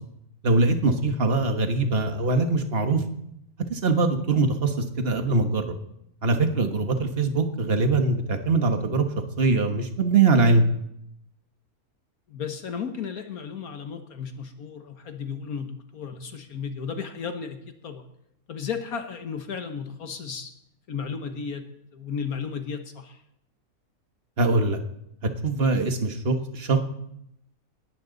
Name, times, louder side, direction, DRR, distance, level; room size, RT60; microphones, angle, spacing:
voice 1, 0.4-3.0 3.7-5.7 6.2-9.0 9.4-10.6 24.4-24.8 25.4-26.8, right 3 dB, 40° right, 6 dB, 1.6 m, -22 dB
voice 2, 12.3-18.0 18.5-20.5 20.9-21.6 21.9-23.2, left 6 dB, 70° left, 7 dB, 1.7 m, -34 dB
19.5 x 14.5 x 4.0 m, 0.79 s
omnidirectional pair, 1.6 m